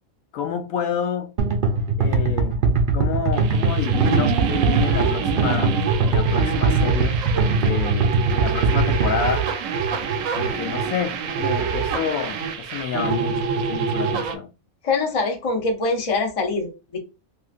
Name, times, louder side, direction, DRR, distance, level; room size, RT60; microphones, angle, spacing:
voice 1, 0.3-1.3 2.0-2.6 2.9-9.5 10.3-14.5, left 7 dB, 80° left, 1.0 m, -29 dB
sound 1, 1.4-9.3, right 4 dB, 55° right, 0.6 m, -20 dB
sound 2, 3.3-14.4, right 6 dB, 70° right, 0.9 m, -26 dB
voice 2, 14.8-17.0, left 3 dB, 35° left, 0.6 m, -24 dB
3.2 x 2.8 x 2.4 m
omnidirectional pair, 1.5 m